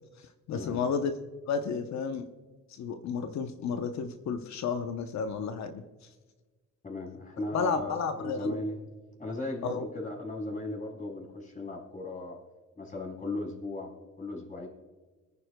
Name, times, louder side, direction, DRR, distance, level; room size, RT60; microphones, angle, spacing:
voice 1, 0.5-1.1 1.5-2.2 2.7-5.8 7.5-8.6 9.6-9.9, left 6 dB, 65° left, 8 dB, 0.8 m, -32 dB
voice 2, 6.8-8.8 9.2-12.4 12.8-13.9 14.2-14.7, left 2 dB, 25° left, -2 dB, 4.1 m, -36 dB
24.5 x 9.7 x 2.2 m, 1.3 s
cardioid pair, 90°, 30 cm